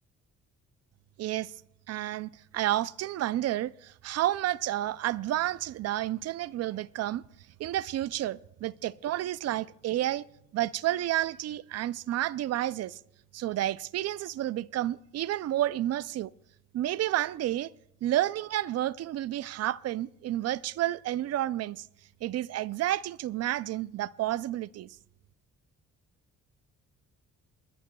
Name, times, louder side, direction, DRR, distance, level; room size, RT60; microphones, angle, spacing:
voice 1, 1.2-1.5 1.9-7.2 7.6-10.2 10.5-13.0 13.3-16.3 16.7-17.7 18.0-21.9 22.2-25.0, right 13 dB, 55° right, 0.4 m, -30 dB
29.0 x 11.0 x 2.3 m
cardioid pair, 90°, 30 cm